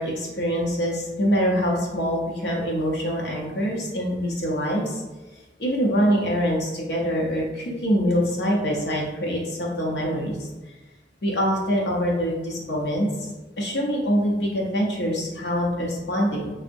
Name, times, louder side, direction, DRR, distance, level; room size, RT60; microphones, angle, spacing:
voice 1, 0.0-5.0 5.6-10.7 11.2-13.3 13.6-16.5, equal, 75° left, -2 dB, 0.7 m, -24 dB
3.4 x 2.0 x 2.6 m, 1.1 s
head